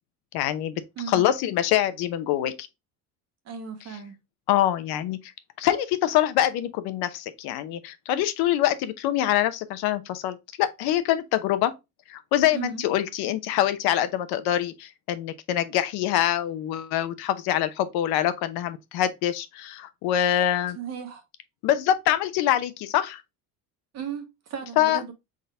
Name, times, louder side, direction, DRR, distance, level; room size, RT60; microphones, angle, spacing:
voice 1, 0.3-0.7 1.1-2.7 4.5-5.2 5.6-11.7 12.1-20.8 21.6-23.2 24.8-25.0, left 12 dB, 70° left, 0.8 m, -25 dB
voice 2, 1.0-1.3 3.4-4.2 12.5-12.8 20.7-21.2 23.9-25.1, right 7 dB, 40° right, 0.9 m, -35 dB
4.2 x 3.7 x 3.3 m
cardioid pair, 170°, 39 cm